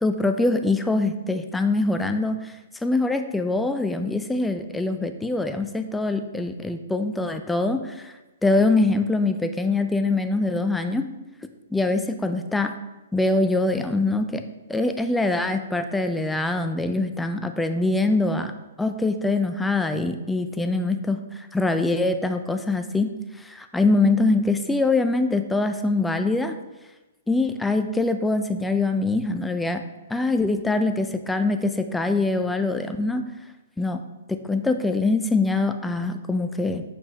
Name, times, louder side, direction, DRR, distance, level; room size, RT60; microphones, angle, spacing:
voice 1, 0.0-2.5 2.8-8.1 8.4-11.1 11.7-12.7 13.1-14.4 14.7-18.5 18.8-21.2 21.5-23.1 23.4-26.6 27.3-29.8 30.1-33.2 33.8-34.0 34.3-36.8, left 2 dB, 5° left, 7 dB, 0.4 m, -23 dB
6.7 x 5.2 x 2.9 m, 1.1 s
hypercardioid pair, 125°, 0 cm